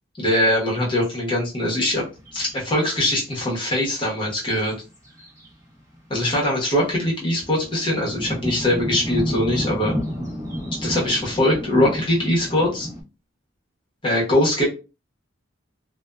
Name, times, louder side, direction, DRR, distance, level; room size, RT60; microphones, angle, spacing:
voice 1, 0.2-2.0 2.3-4.7 6.1-9.9 10.8-12.9 14.0-14.7, left 1 dB, 25° left, -4 dB, 1.0 m, -22 dB
sound 1, 1.6-3.9 4.1-4.3 4.6-6.2 6.7-13.0, equal, 15° right, 0.7 m, -31 dB
2.5 x 2.1 x 2.2 m, 0.31 s
head